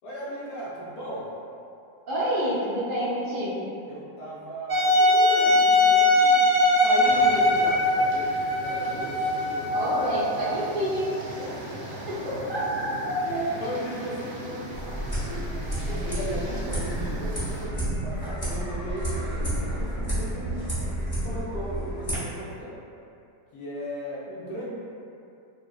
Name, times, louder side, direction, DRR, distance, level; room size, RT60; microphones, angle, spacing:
voice 1, 0.0-1.3 3.9-9.2 9.5-9.7 10.5-10.6 11.4-12.5 13.2-14.8 15.2-22.8 23.5-24.7, equal, 70° left, -7 dB, 1.0 m, -36 dB
voice 2, 2.1-3.7 9.7-11.1 12.1-13.4, equal, 90° right, -9 dB, 0.4 m, -28 dB
Wind instrument woodwind instrument, 4.7-10.3, left 1 dB, 40° right, 0.7 m, -21 dB
sound 1, 7.0-17.7, right 1 dB, 65° right, 1.0 m, -39 dB
sound 2, 14.7-22.2, right 1 dB, 30° left, 0.3 m, -30 dB
3.6 x 2.0 x 2.3 m, 2.6 s
omnidirectional pair, 1.8 m